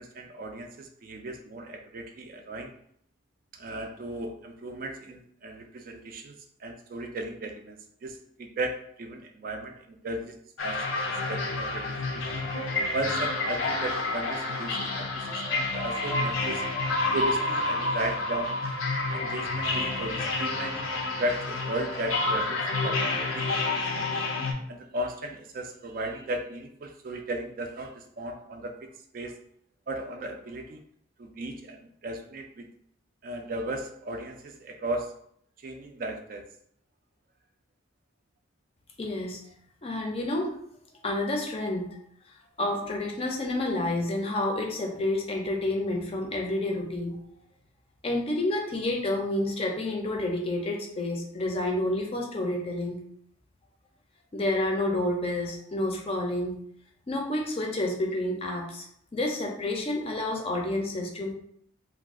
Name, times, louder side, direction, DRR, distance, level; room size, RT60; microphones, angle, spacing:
voice 1, 0.0-2.7 3.5-6.3 6.6-7.8 8.0-10.4 10.6-12.5 12.9-16.6 17.1-18.5 19.1-24.3 24.7-28.9 29.1-29.4 29.9-30.8 31.2-32.7 33.2-35.1 35.6-36.5, right 1 dB, 45° right, 4 dB, 0.3 m, -36 dB
sound 1, 10.6-24.5, left 2 dB, 85° left, 0.5 m, -29 dB
voice 2, 39.0-39.4 39.8-40.5 41.0-41.9 42.6-47.1 48.0-53.0 54.3-56.6 57.1-58.9 59.1-61.3, left 1 dB, 30° left, 0 dB, 0.5 m, -29 dB
2.4 x 2.2 x 3.5 m, 0.68 s
head